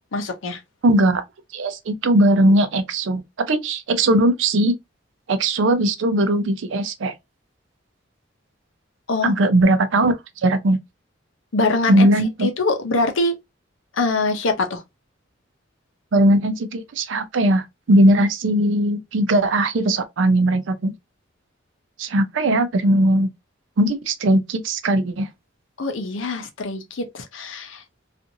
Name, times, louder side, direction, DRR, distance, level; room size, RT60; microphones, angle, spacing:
voice 1, 0.1-0.6 9.1-9.3 11.5-12.1 12.4-13.3 13.9-14.8 25.8-27.8, left 2 dB, 85° left, 0.7 m, -23 dB
voice 2, 0.8-1.2 1.5-3.2 3.5-4.7 5.3-7.1 9.2-10.1 10.4-10.8 11.9-12.5 16.1-20.9 22.0-23.3 23.8-25.3, right 1 dB, 75° right, 0.5 m, -19 dB
2.6 x 2.4 x 2.6 m
head